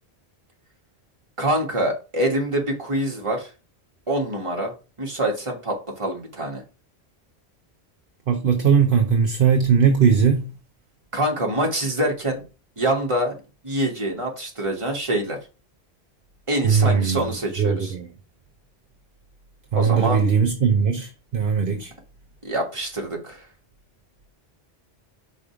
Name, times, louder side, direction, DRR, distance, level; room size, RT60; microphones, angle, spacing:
voice 1, 1.4-3.5 4.1-6.6 11.1-12.4 12.8-13.3 13.6-15.4 16.5-17.9 19.7-20.2 22.4-23.4, right 1 dB, 30° right, 1.7 m, -25 dB
voice 2, 8.3-10.5 16.6-17.3 17.6-18.1 19.7-21.9, right 6 dB, 60° right, 0.9 m, -19 dB
5.2 x 4.2 x 4.8 m
omnidirectional pair, 1.1 m